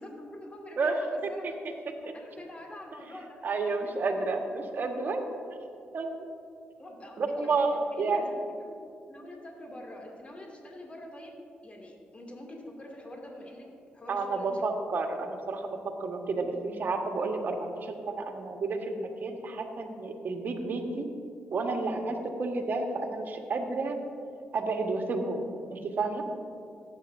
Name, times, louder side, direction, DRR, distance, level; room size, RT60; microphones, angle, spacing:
voice 1, 0.0-1.5 2.0-3.9 4.7-4.8 6.8-8.7 9.1-11.3 11.6-13.7 13.9-14.6 23.4-23.5, left 1 dB, 30° left, -1 dB, 2.6 m, -45 dB
voice 2, 3.4-5.2 5.9-6.3 7.2-8.3 14.1-21.1 21.5-24.0 24.5-26.2, right 3 dB, 55° right, 3 dB, 1.5 m, -31 dB
18.0 x 8.9 x 2.7 m, 2.3 s
supercardioid pair, 55°, 4 cm